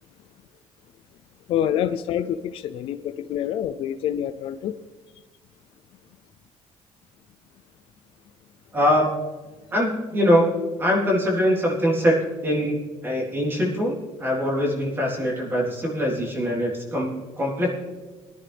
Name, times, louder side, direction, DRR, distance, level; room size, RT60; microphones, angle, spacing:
voice 1, 1.5-4.8, left 10 dB, 60° left, 9 dB, 0.5 m, -27 dB
voice 2, 8.7-9.1 9.7-10.5 10.8-17.7, equal, 20° right, -3 dB, 3.9 m, -23 dB
22.0 x 10.5 x 3.5 m, 1.3 s
cardioid pair, 160°, 11 cm